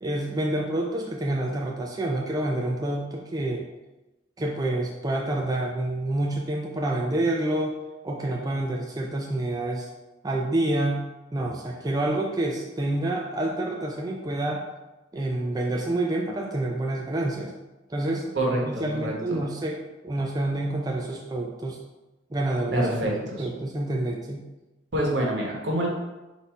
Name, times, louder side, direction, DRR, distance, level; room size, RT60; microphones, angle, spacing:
voice 1, 0.0-3.6 4.4-7.7 8.0-9.9 10.2-14.6 15.1-17.5 17.9-18.4 18.6-19.8 20.0-21.8 22.3-22.9 23.4-24.5, right 1 dB, 20° right, 0 dB, 0.3 m, -28 dB
voice 2, 18.3-19.4 22.7-23.5 24.9-25.9, right 1 dB, 75° right, -2 dB, 1.1 m, -26 dB
4.1 x 2.7 x 4.6 m, 1.1 s
head